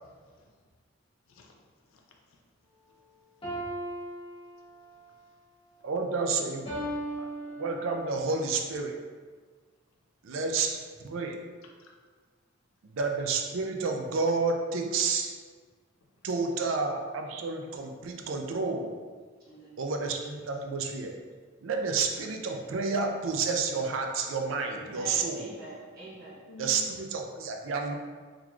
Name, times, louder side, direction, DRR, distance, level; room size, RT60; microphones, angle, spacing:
voice 1, 0.0-0.6 1.3-1.6 1.9-2.4 11.6-11.9 16.2-16.3 26.5-27.0, left 2 dB, 85° left, 0.5 m, -51 dB
sound 1, 3.4-5.0 6.7-8.1, right 1 dB, 25° left, 0.9 m, -37 dB
voice 2, 5.8-6.8 7.2-7.3 7.6-8.9 10.2-11.4 12.8-15.3 16.2-19.0 19.8-21.2 21.6-25.5 26.6-28.0, right 4 dB, 75° right, 0.4 m, -30 dB
voice 3, 19.4-19.9 20.8-21.0 24.7-26.5, right 2 dB, 50° right, 1.0 m, -45 dB
3.8 x 3.0 x 2.4 m
head